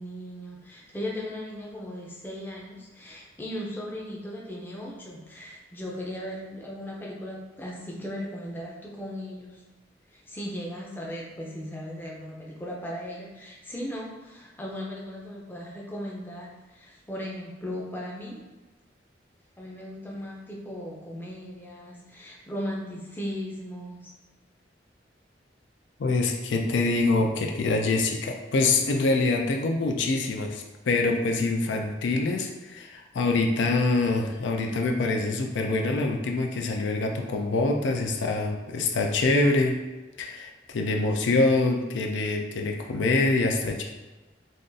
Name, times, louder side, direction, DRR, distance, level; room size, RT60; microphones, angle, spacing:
voice 1, 0.0-9.6 10.1-18.4 19.6-24.1, equal, 10° left, -3 dB, 0.5 m, -37 dB
voice 2, 26.0-39.8 40.2-43.8, left 3 dB, 80° left, 3 dB, 0.4 m, -25 dB
2.5 x 2.5 x 3.8 m, 1.1 s
head